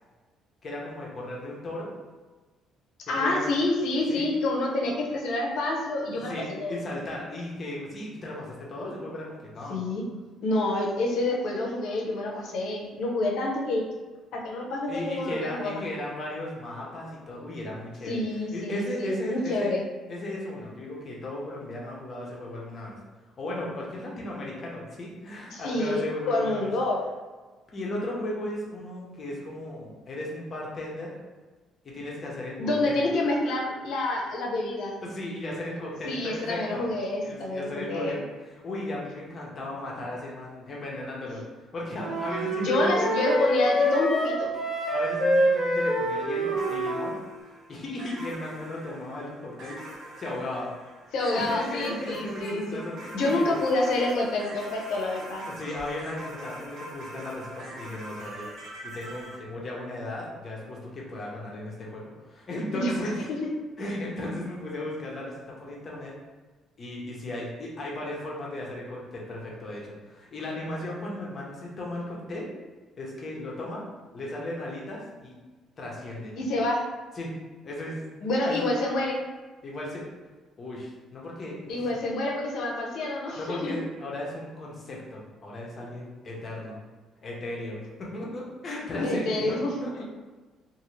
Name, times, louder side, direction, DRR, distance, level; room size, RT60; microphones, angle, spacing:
voice 1, 0.6-1.9 3.2-3.4 4.1-4.2 6.1-9.8 14.9-18.2 18.5-19.7 20.1-23.0 23.4-26.7 27.7-31.1 31.8-33.0 35.0-36.8 37.2-41.4 41.7-43.1 44.9-47.2 47.7-49.8 50.2-50.7 51.3-53.5 55.5-63.1 63.8-66.1 66.8-72.5 73.0-73.8 74.1-75.3 75.8-76.4 77.2-77.3 77.6-78.0 78.5-78.7 79.6-80.0 80.6-81.9 83.4-86.8 87.2-89.9, left 1 dB, 35° left, -3 dB, 0.7 m, -36 dB
voice 2, 3.1-6.7 9.7-10.1 10.4-13.8 14.3-15.8 18.1-19.8 25.5-27.0 32.6-35.0 36.0-38.2 42.6-44.5 51.1-52.8 53.1-55.5 62.7-63.5 76.3-76.8 78.2-79.2 81.7-83.7 88.9-90.0, left 2 dB, 70° left, -1 dB, 0.7 m, -28 dB
Flute - E natural minor - bad-articulation-staccato, 42.0-47.1, equal, 10° right, 0.7 m, -26 dB
sound 1, 46.6-59.4, right 1 dB, 55° right, 0.8 m, -43 dB
2.6 x 2.5 x 3.1 m, 1.3 s
cardioid pair, 135°, 0 cm